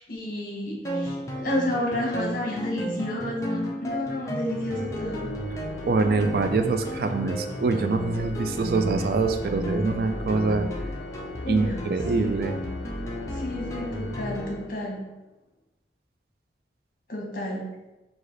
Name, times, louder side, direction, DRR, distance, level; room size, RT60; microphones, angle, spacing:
voice 1, 0.0-5.3 11.4-11.8 12.1-12.5 13.3-15.0 17.1-17.7, left 1 dB, 50° left, -2 dB, 1.0 m, -31 dB
sound 1, 0.8-14.6, equal, 15° left, 0.5 m, -34 dB
Organ, 4.5-15.3, left 2 dB, 85° left, 0.5 m, -40 dB
voice 2, 5.8-10.7 11.5-12.6, right 3 dB, 55° right, 8 dB, 0.3 m, -24 dB
4.8 x 2.4 x 3.9 m, 1.0 s
head